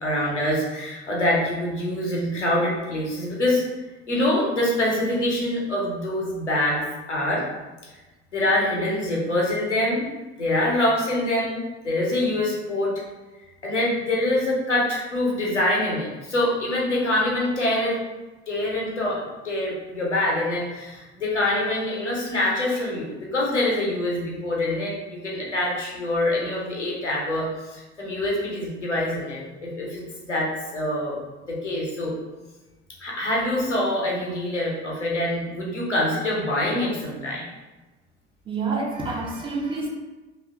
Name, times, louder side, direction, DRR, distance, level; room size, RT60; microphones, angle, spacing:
voice 1, 0.0-3.6 4.1-7.4 7.9-8.0 8.3-10.1 10.4-12.9 13.6-18.0 18.5-31.1 31.5-32.1 33.0-37.5, left 1 dB, 90° left, -4 dB, 0.7 m, -25 dB
voice 2, 38.5-39.9, right 3 dB, 15° right, -2 dB, 0.4 m, -28 dB
2.7 x 2.2 x 2.4 m, 1.2 s
figure-of-eight pair, 65°, 34 cm